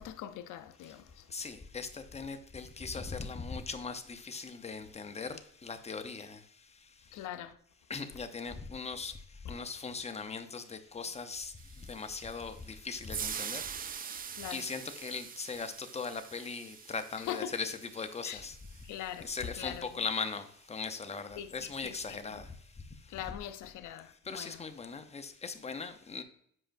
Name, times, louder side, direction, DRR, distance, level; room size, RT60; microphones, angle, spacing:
voice 1, 0.0-1.2 7.1-7.5 9.4-9.5 14.4-14.6 17.2-17.5 18.2-18.4 18.8-19.3 19.6-19.9 21.4-22.0 22.3-22.4 23.1-24.6, left 11 dB, 85° left, 0.6 m, -42 dB
voice 2, 1.3-5.3 5.6-6.4 7.9-9.1 9.5-11.5 11.9-13.6 13.9-18.6 19.2-22.5 24.3-26.2, left 4 dB, 20° left, 0.7 m, -39 dB
sound 1, 11.6-19.9, right 7 dB, 30° right, 0.3 m, -44 dB
7.7 x 5.0 x 2.6 m
cardioid pair, 90°, 30 cm